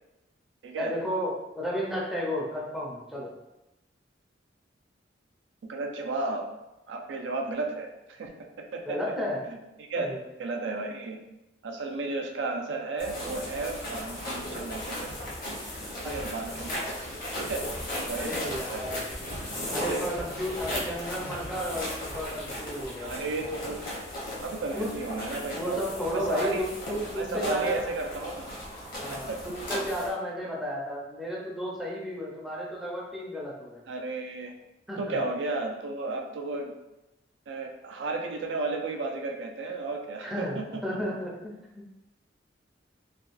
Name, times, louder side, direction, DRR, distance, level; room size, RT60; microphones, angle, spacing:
voice 1, 0.8-3.3 8.9-9.4 10.0-10.2 16.0-16.1 16.7-16.9 18.1-19.0 19.7-23.2 24.7-24.9 25.5-27.8 29.0-33.8 34.9-35.2 40.2-41.3, equal, ahead, -5 dB, 0.5 m, -33 dB
voice 2, 5.6-6.4 6.9-8.3 8.7-9.0 9.5-10.1 10.4-11.2 11.6-15.1 16.0-16.8 17.4-17.6 18.1-18.9 19.9-20.0 23.0-23.8 24.4-25.8 26.1-26.6 27.1-28.5 29.1-29.4 33.9-34.5 35.0-36.7 37.5-40.8, right 3 dB, 80° right, 3 dB, 0.4 m, -33 dB
sound 1, 13.0-30.1, left 1 dB, 50° left, 1.0 m, -36 dB
3.4 x 2.2 x 2.5 m, 0.95 s
head